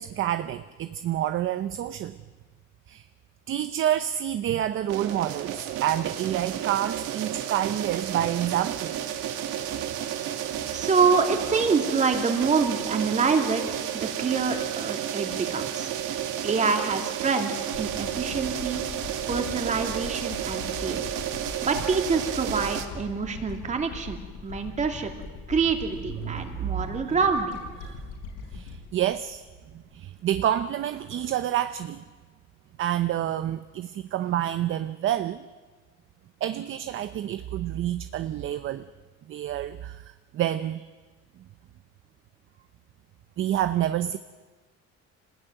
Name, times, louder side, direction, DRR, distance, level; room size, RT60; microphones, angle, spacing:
voice 1, 0.0-2.2 2.9-3.1 3.5-8.9 26.2-26.7 27.1-27.2 27.8-28.0 28.5-29.4 29.7-32.0 32.8-35.5 36.4-38.8 39.3-40.9 43.4-44.2, right 11 dB, 40° right, 11 dB, 0.7 m, -28 dB
sound 1, 4.9-22.8, right 10 dB, 80° right, 2.5 m, -32 dB
voice 2, 10.7-15.9 16.4-18.8 19.3-21.1 21.6-24.2 24.4-25.1 25.5-27.6, right 5 dB, 25° right, 4 dB, 2.7 m, -26 dB
sound 2, 17.7-30.2, left 3 dB, 70° left, 6.4 m, -41 dB
27.0 x 19.5 x 9.2 m, 1.4 s
cardioid pair, 160°, 31 cm